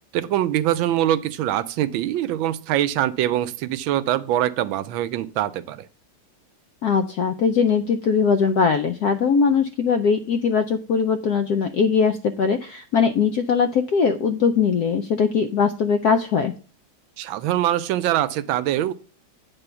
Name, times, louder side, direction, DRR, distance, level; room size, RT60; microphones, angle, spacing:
voice 1, 0.1-5.9 17.2-18.9, right 12 dB, 75° right, 13 dB, 1.3 m, -23 dB
voice 2, 6.8-16.5, left 6 dB, 80° left, 8 dB, 0.8 m, -20 dB
8.9 x 3.7 x 6.7 m, 0.40 s
omnidirectional pair, 2.3 m